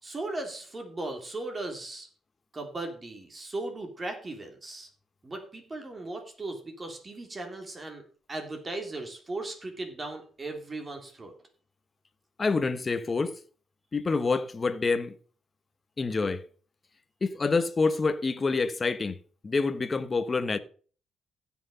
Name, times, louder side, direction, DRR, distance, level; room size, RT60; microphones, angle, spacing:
voice 1, 0.0-2.1 2.5-4.9 5.2-11.3, right 2 dB, 25° right, 3.3 m, -37 dB
voice 2, 12.4-13.3 13.9-15.1 16.0-16.4 17.2-19.2 19.4-20.6, left 4 dB, 30° left, 1.2 m, -27 dB
15.5 x 6.1 x 5.6 m
cardioid pair, 90°, 0 cm